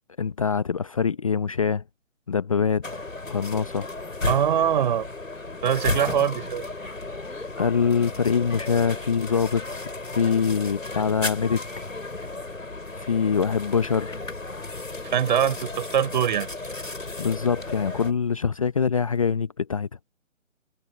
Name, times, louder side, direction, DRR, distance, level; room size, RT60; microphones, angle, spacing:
voice 1, 0.2-1.8 2.3-2.8 3.3-3.9 7.6-11.6 13.0-14.2 17.2-19.9, left 6 dB, 25° left, 0.7 m, -24 dB
sound 1, 2.8-18.1, left 2 dB, 85° left, 7.5 m, -34 dB
voice 2, 4.3-5.1 5.6-6.6 15.0-16.5, right 9 dB, 35° right, 4.0 m, -23 dB
figure-of-eight pair, 150°, 39 cm